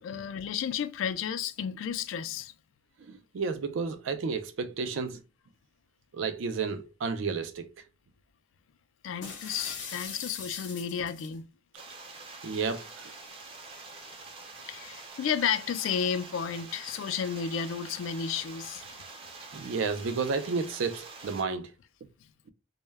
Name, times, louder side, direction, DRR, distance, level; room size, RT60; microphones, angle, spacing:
voice 1, 0.0-2.5 9.0-11.5 14.7-18.9, left 7 dB, 90° left, 0.3 m, -32 dB
voice 2, 3.0-5.2 6.1-7.7 12.4-13.1 19.5-21.7, right 5 dB, 90° right, 0.4 m, -32 dB
sound 1, 9.2-11.3, left 5 dB, 65° left, 0.7 m, -40 dB
sound 2, 11.7-21.4, right 3 dB, 30° right, 0.5 m, -46 dB
2.1 x 2.1 x 3.2 m
head